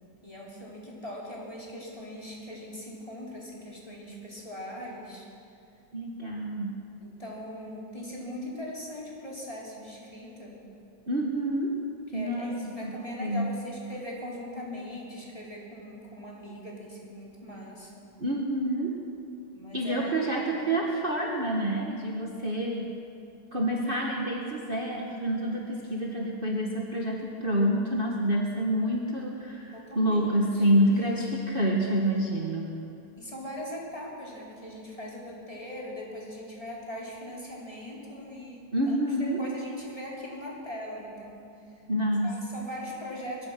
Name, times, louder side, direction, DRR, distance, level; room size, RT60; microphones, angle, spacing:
voice 1, 0.2-5.3 7.0-10.6 12.1-18.1 19.5-20.1 20.4-20.7 29.7-30.8 33.2-41.4 42.2-43.5, left 1 dB, 20° left, -5 dB, 4.9 m, -40 dB
voice 2, 5.9-6.8 11.1-11.8 12.1-12.5 12.8-13.5 18.2-19.0 19.7-22.9 23.5-32.7 38.7-39.4 41.9-42.4, right 1 dB, 30° right, -2 dB, 1.9 m, -28 dB
24.0 x 21.5 x 6.1 m, 2.5 s
omnidirectional pair, 1.9 m